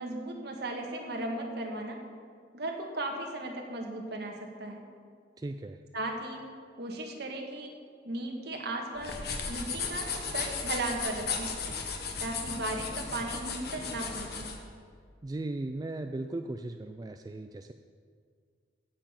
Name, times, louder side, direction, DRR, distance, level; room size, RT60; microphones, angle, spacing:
voice 1, 0.0-2.0 2.5-4.8 5.9-6.4 6.8-7.7 8.0-9.2 9.5-11.5 12.2-14.6, right 2 dB, 60° right, 1 dB, 1.8 m, -36 dB
voice 2, 5.4-5.8 15.2-17.7, right 2 dB, 20° right, 7 dB, 0.3 m, -37 dB
sound 1, 9.0-14.6, left 5 dB, 55° left, 1.4 m, -35 dB
16.5 x 7.0 x 5.9 m, 2.1 s
head